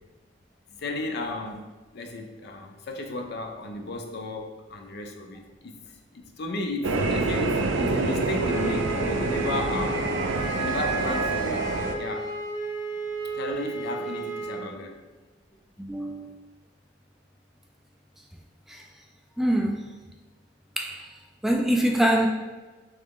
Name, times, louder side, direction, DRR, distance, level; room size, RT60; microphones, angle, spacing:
voice 1, 0.8-5.7 6.1-10.0 10.6-11.7 12.0-12.3 13.4-15.0, left 2 dB, 60° left, 4 dB, 0.5 m, -34 dB
sound 1, 6.8-11.9, right 2 dB, 75° right, 0.4 m, -27 dB
Wind instrument woodwind instrument, 8.4-14.7, right 3 dB, 20° left, 0.9 m, -33 dB
voice 2, 15.8-16.4 18.7-18.8 19.4-19.9 20.8-21.1 21.4-22.3, right 1 dB, ahead, 1 dB, 0.3 m, -24 dB
3.8 x 3.2 x 3.6 m, 1.2 s
head